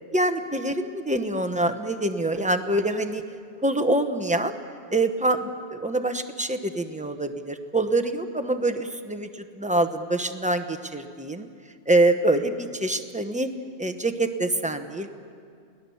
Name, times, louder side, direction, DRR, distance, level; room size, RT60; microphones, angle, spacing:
voice 1, 0.1-3.2 3.6-4.5 4.9-11.5 11.9-13.5 13.8-15.1, right 2 dB, 5° right, 7 dB, 0.9 m, -25 dB
29.0 x 19.0 x 7.1 m, 2.2 s
omnidirectional pair, 1.2 m